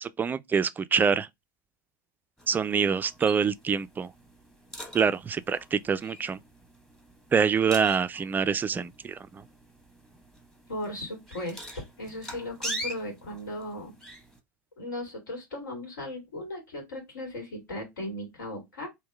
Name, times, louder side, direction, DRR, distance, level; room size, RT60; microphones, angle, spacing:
voice 1, 0.0-1.3 2.5-4.1 4.9-6.4 7.3-9.4, right 6 dB, 20° right, 0.3 m, -26 dB
sound 1, 2.4-14.4, equal, 5° left, 1.0 m, -44 dB
voice 2, 10.7-11.6 12.0-13.9 14.8-18.9, left 1 dB, 75° left, 2.1 m, -37 dB
3.5 x 2.7 x 3.3 m
hypercardioid pair, 85°, 10 cm